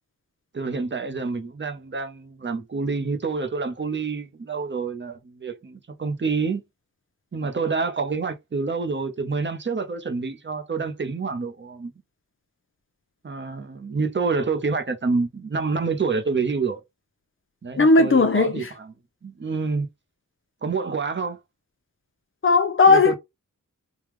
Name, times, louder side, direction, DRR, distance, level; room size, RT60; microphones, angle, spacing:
voice 1, 0.5-6.6 7.3-11.9 13.2-16.8 17.6-18.9 19.2-19.9 20.6-21.4 22.9-23.1, right 4 dB, 35° right, 0.8 m, -27 dB
voice 2, 17.8-18.7 22.4-23.1, left 3 dB, 40° left, 0.8 m, -16 dB
3.5 x 2.4 x 3.0 m
wide cardioid pair, 85°, 33 cm